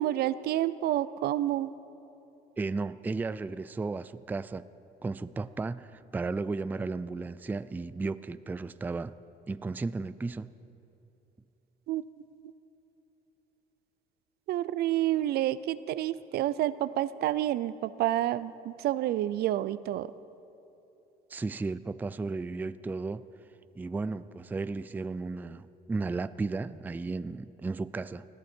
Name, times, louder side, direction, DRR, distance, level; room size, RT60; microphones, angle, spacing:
voice 1, 0.0-1.7 11.9-12.2 14.5-20.1, right 13 dB, 70° right, 16 dB, 0.5 m, -29 dB
voice 2, 2.6-4.7 5.0-9.1 9.5-10.5 21.3-23.2 23.7-28.2, right 3 dB, 10° right, 15 dB, 0.3 m, -34 dB
20.0 x 14.0 x 4.5 m, 3.0 s
cardioid pair, 110°, 17 cm